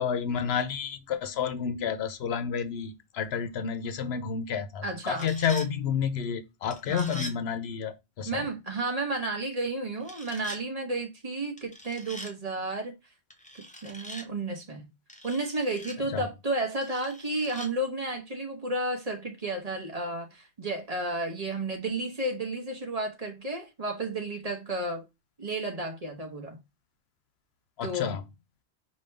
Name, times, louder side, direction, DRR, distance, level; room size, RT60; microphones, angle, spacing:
voice 1, 0.0-8.5 16.1-16.2 27.8-28.2, left 7 dB, 75° left, 0.8 m, -30 dB
voice 2, 4.8-5.3 6.9-7.2 8.2-13.0 13.8-14.9 15.2-25.0 25.4-26.6 27.8-28.1, right 2 dB, 35° right, 1.1 m, -32 dB
sound 1, 4.9-5.7 6.7-7.4 10.0-10.6 11.6-12.3 13.3-14.3 15.1-16.0 16.8-17.7, equal, 10° left, 0.5 m, -43 dB
5.1 x 2.7 x 3.3 m
omnidirectional pair, 1.1 m